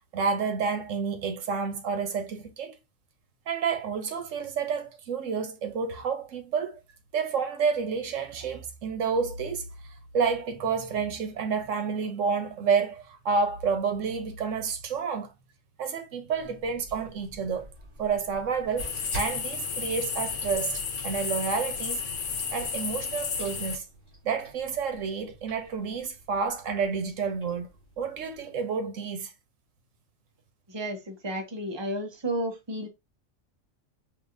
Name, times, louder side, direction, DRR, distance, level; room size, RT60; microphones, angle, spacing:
voice 1, 0.1-2.8 3.5-6.8 7.1-9.7 10.1-15.3 15.8-17.7 18.0-22.0 22.5-23.8 24.2-27.7 28.0-29.3, right 5 dB, 85° right, 1.2 m, -29 dB
sound 1, 16.3-28.4, right 1 dB, 45° right, 2.8 m, -48 dB
sound 2, 18.8-23.8, left 5 dB, 75° left, 1.2 m, -32 dB
voice 2, 30.7-32.9, right 1 dB, 25° right, 0.9 m, -32 dB
5.7 x 2.9 x 2.5 m
omnidirectional pair, 1.3 m